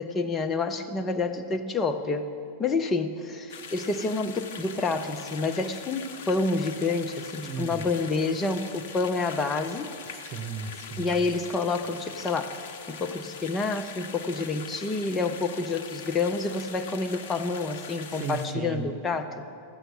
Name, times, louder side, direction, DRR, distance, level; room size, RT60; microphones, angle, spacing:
voice 1, 0.0-2.3 2.6-9.9 11.0-19.4, left 3 dB, 20° left, 6 dB, 0.7 m, -28 dB
sound 1, 3.5-18.5, left 6 dB, 55° left, 0.7 m, -42 dB
voice 2, 7.4-7.8 10.1-11.2 18.2-18.9, right 5 dB, 40° right, 7 dB, 1.1 m, -35 dB
13.5 x 8.0 x 9.1 m, 2.5 s
figure-of-eight pair, 90°, 0 cm